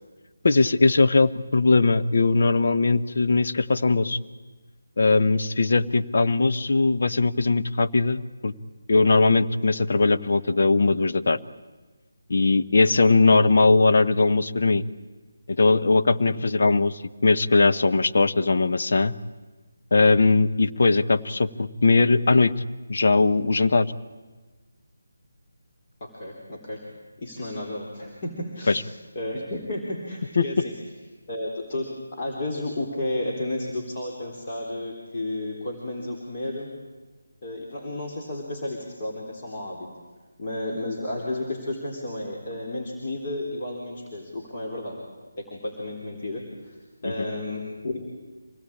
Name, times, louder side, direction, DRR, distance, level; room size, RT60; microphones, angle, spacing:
voice 1, 0.4-4.2 5.0-8.5 8.9-11.4 12.3-14.8 15.5-19.1 19.9-22.5 22.9-23.9 28.7-28.8 30.4-30.5 47.0-47.1, left 3 dB, 55° left, 10 dB, 1.1 m, -20 dB
voice 2, 26.0-26.8 27.2-28.8 29.2-30.7 31.3-36.7 37.4-39.9 40.4-45.0 45.4-46.8 47.0-48.1, left 1 dB, 40° left, -1 dB, 3.7 m, -32 dB
26.0 x 19.0 x 8.7 m, 1.3 s
figure-of-eight pair, 155°, 0 cm